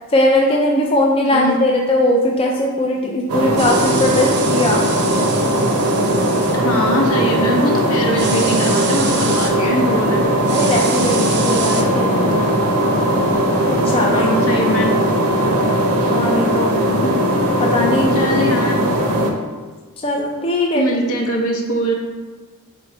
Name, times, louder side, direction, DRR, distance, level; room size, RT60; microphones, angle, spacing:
voice 1, 0.1-4.8 10.5-12.2 13.9-14.3 16.1-16.7 17.6-18.2 20.0-20.8, left 1 dB, 25° left, 0 dB, 0.4 m, -19 dB
voice 2, 1.2-1.6 6.6-10.2 14.1-14.9 16.9-17.1 18.1-18.8 20.7-21.9, equal, 70° left, 1 dB, 0.8 m, -21 dB
sound 1, 3.3-19.3, right 1 dB, 90° right, 0.7 m, -18 dB
sound 2, 3.6-6.6 8.2-9.5 10.5-11.8, right 5 dB, 50° right, 0.5 m, -27 dB
3.9 x 3.0 x 4.5 m, 1.4 s
head